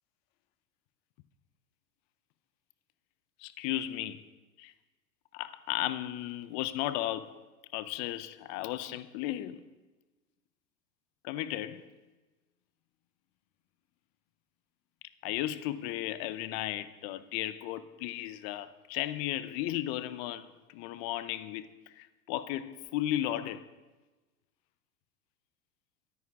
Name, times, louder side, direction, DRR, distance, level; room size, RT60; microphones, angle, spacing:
voice 1, 3.4-4.2 4.6-4.7 5.3-7.3 7.7-9.6 11.2-11.8 15.2-23.7, left 13 dB, 45° left, 0.7 m, -35 dB
22.0 x 9.5 x 2.4 m
hypercardioid pair, 85°, 47 cm